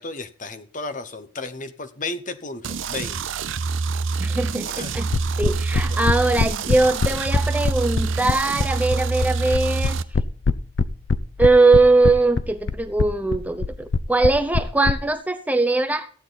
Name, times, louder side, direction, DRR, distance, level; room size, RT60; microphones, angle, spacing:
voice 1, 0.0-3.2 4.7-4.9, left 3 dB, 40° left, 1.0 m, -33 dB
sound 1, 2.6-10.0, right 4 dB, 80° right, 0.7 m, -26 dB
voice 2, 4.2-5.1 5.4-10.0 11.4-16.1, right 3 dB, 10° right, 0.6 m, -20 dB
sound 2, 5.1-14.9, left 4 dB, 75° left, 0.6 m, -22 dB
15.0 x 8.7 x 4.0 m
head